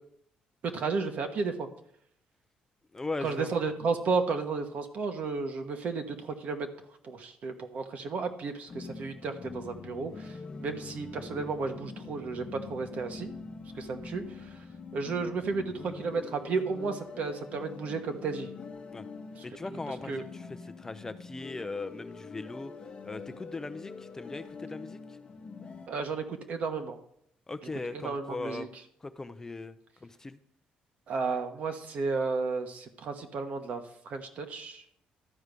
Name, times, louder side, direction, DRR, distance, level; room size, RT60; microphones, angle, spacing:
voice 1, 0.6-1.7 3.2-6.7 7.0-13.3 13.8-14.6 14.9-18.5 19.4-19.5 19.7-19.8 20.1-20.2 25.9-27.0 27.9-28.7 31.1-34.8, right 4 dB, 55° right, 6 dB, 1.3 m, -33 dB
voice 2, 2.9-3.5 18.9-19.0 19.4-22.7 23.0-25.0 27.5-28.7 29.0-30.4, left 3 dB, 20° left, 10 dB, 0.5 m, -39 dB
sound 1, 8.7-25.9, left 4 dB, 40° left, 1.0 m, -44 dB
12.5 x 4.8 x 6.7 m, 0.71 s
cardioid pair, 110°, 3 cm